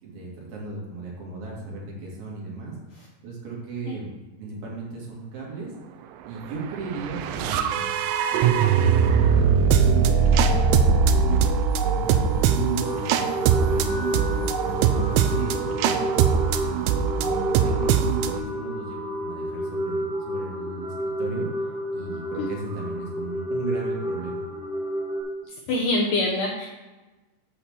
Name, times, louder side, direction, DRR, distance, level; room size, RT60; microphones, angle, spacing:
voice 1, 0.0-2.7 3.2-4.1 4.4-5.7 6.3-7.9 8.3-11.4 11.8-13.2 13.7-16.1 16.6-21.5 21.9-24.4, right 3 dB, 65° right, -3 dB, 3.7 m, -36 dB
sound 1, 6.6-18.4, right 6 dB, 85° right, 2.0 m, -21 dB
sound 2, 12.8-25.2, equal, 20° right, 0.7 m, -31 dB
voice 2, 25.7-26.7, left 2 dB, 75° left, -2 dB, 2.0 m, -24 dB
7.9 x 4.2 x 7.0 m, 1.2 s
omnidirectional pair, 4.8 m